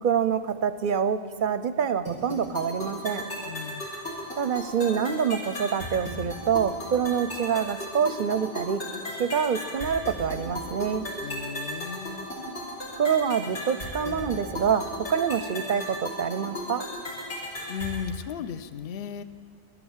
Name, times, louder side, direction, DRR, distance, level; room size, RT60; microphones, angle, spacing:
voice 1, 0.0-3.2 4.3-8.8 9.2-11.1 13.0-14.8 15.1-16.8, right 7 dB, 55° right, 12 dB, 0.6 m, -26 dB
sound 1, 2.1-18.1, equal, 80° left, 3.8 m, -36 dB
voice 2, 3.4-3.9 11.2-12.3 17.7-19.2, left 7 dB, 60° left, 12 dB, 0.8 m, -35 dB
12.0 x 11.0 x 7.2 m, 2.2 s
omnidirectional pair, 1.1 m